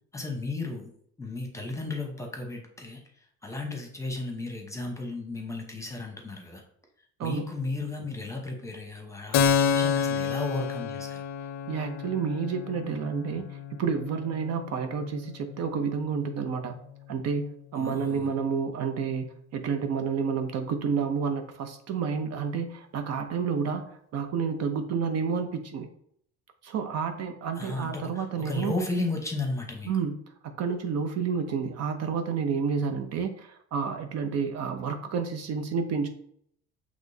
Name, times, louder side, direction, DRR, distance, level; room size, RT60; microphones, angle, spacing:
voice 1, 0.1-0.9 1.2-3.0 3.4-6.6 7.2-11.2 17.7-18.3 27.6-29.9, left 2 dB, 10° left, 2 dB, 0.9 m, -34 dB
Keyboard (musical), 9.3-16.6, left 7 dB, 65° left, 0.5 m, -30 dB
voice 2, 11.7-16.7 17.1-19.3 19.5-25.9 26.6-28.7 29.9-30.2 30.4-36.1, right 6 dB, 60° right, 6 dB, 0.6 m, -30 dB
6.0 x 3.0 x 2.7 m, 0.66 s
cardioid pair, 115°, 29 cm